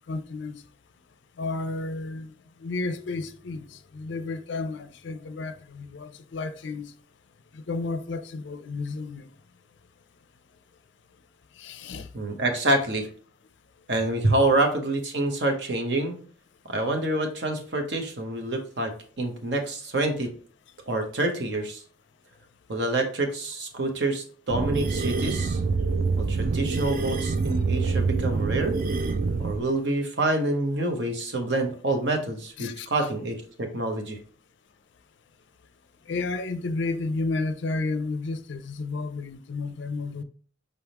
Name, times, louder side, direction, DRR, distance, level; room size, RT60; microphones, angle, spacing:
voice 1, 0.1-0.6 1.4-2.3 2.6-6.9 7.5-9.3 11.6-12.1 32.6-32.9 36.1-40.2, left 3 dB, 70° left, 0.5 m, -32 dB
voice 2, 12.1-13.1 13.9-16.2 16.6-18.9 19.2-20.3 20.9-21.8 22.7-25.6 26.2-28.7 29.4-34.2, right 2 dB, 60° right, 0.9 m, -27 dB
sound 1, 24.5-29.7, right 4 dB, 45° right, 0.3 m, -26 dB
5.2 x 3.5 x 2.9 m
head